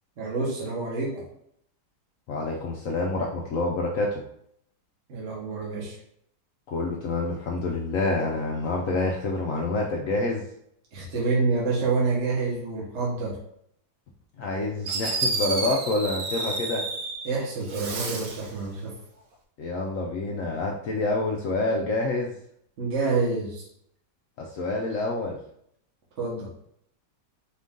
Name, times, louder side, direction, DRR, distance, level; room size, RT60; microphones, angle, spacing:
voice 1, 0.2-1.2 5.1-6.0 10.9-13.4 17.2-18.9 22.8-23.6 26.2-26.5, right 3 dB, 45° right, -5 dB, 1.3 m, -27 dB
voice 2, 2.3-4.2 6.7-10.4 14.4-16.8 19.6-22.3 24.4-25.4, left 2 dB, 70° left, 0 dB, 0.8 m, -27 dB
Fireworks, 14.4-14.5 14.9-17.3 17.6-18.5, right 3 dB, 75° right, 1.2 m, -30 dB
4.4 x 2.6 x 3.5 m, 0.71 s
omnidirectional pair, 1.8 m